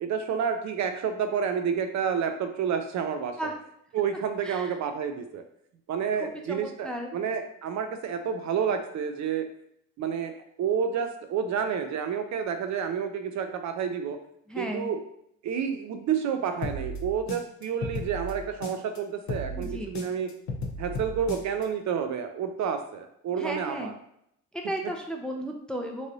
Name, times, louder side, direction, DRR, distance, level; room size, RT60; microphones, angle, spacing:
voice 1, 0.0-3.5 3.9-5.4 5.9-9.5 10.0-10.3 10.6-14.2 14.6-15.0 15.4-20.3 20.8-23.9, right 7 dB, 65° right, 7 dB, 0.5 m, -29 dB
voice 2, 4.4-4.7 6.1-7.1 14.5-14.9 19.5-20.0 23.4-23.9 24.5-26.1, right 1 dB, 5° left, 2 dB, 0.4 m, -35 dB
sound 1, 16.6-19.0 19.3-21.6, left 1 dB, 65° left, 0.6 m, -34 dB
3.2 x 2.6 x 2.6 m, 0.74 s
cardioid pair, 90°, 30 cm